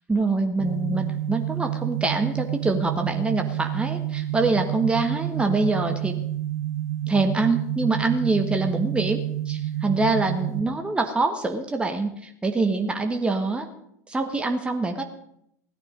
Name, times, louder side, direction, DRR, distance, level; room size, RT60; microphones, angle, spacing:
voice 1, 0.1-6.2 7.1-13.7 14.1-15.0, right 3 dB, 10° right, 5 dB, 1.6 m, -25 dB
sound 1, 0.6-10.6, right 13 dB, 70° right, 1.4 m, -29 dB
17.0 x 12.0 x 5.2 m, 0.74 s
figure-of-eight pair, 75°, 9 cm